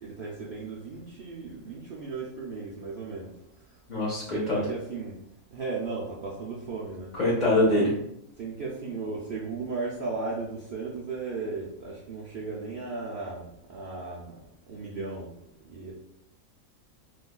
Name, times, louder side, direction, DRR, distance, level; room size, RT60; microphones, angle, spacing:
voice 1, 0.0-3.3 4.3-5.1 5.5-7.1 8.4-14.3 14.7-15.3 15.7-15.9, right 4 dB, 65° right, -5 dB, 0.5 m, -35 dB
voice 2, 3.9-4.7 7.1-7.9, left 1 dB, 35° left, -6 dB, 0.9 m, -24 dB
3.8 x 2.6 x 2.2 m, 0.76 s
omnidirectional pair, 1.5 m